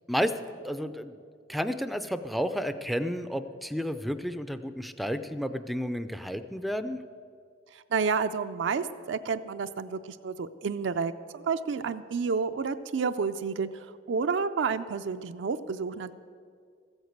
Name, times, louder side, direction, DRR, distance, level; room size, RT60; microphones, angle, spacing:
voice 1, 0.1-1.1 1.5-7.0, equal, ahead, 11 dB, 0.4 m, -31 dB
voice 2, 7.7-16.1, right 5 dB, 75° right, 9 dB, 0.4 m, -30 dB
14.5 x 8.1 x 8.0 m, 2.2 s
head